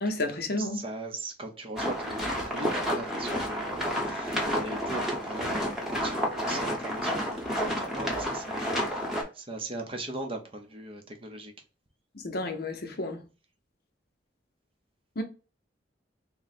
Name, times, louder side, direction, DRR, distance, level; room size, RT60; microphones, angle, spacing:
voice 1, 0.0-0.8 12.1-13.2 15.2-15.3, left 2 dB, 55° left, 0.7 m, -31 dB
voice 2, 0.6-11.5, right 2 dB, 30° right, 0.6 m, -39 dB
sound 1, 1.8-9.2, equal, ahead, 0.9 m, -30 dB
3.7 x 2.1 x 4.1 m
head